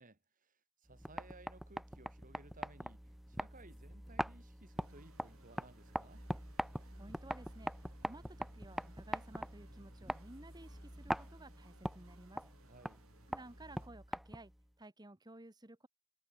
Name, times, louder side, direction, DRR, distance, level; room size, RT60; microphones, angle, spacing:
voice 1, 0.0-6.2 12.6-13.0, right 2 dB, 40° right, 2.9 m, -60 dB
sound 1, 0.9-14.6, equal, ahead, 0.3 m, -43 dB
sound 2, 4.8-13.9, right 3 dB, 70° right, 3.6 m, -66 dB
voice 2, 6.9-12.4 13.3-14.5 14.8-15.9, right 1 dB, 20° right, 1.7 m, -55 dB
head